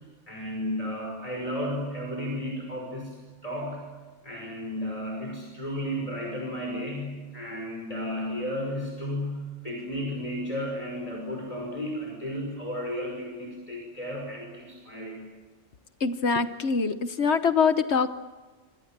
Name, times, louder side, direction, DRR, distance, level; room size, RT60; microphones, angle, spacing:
voice 1, 0.3-3.9 4.2-15.2, equal, 30° left, -1 dB, 5.6 m, -33 dB
voice 2, 16.0-18.1, left 5 dB, 60° left, 11 dB, 1.3 m, -24 dB
27.5 x 25.5 x 7.5 m, 1.3 s
omnidirectional pair, 1.3 m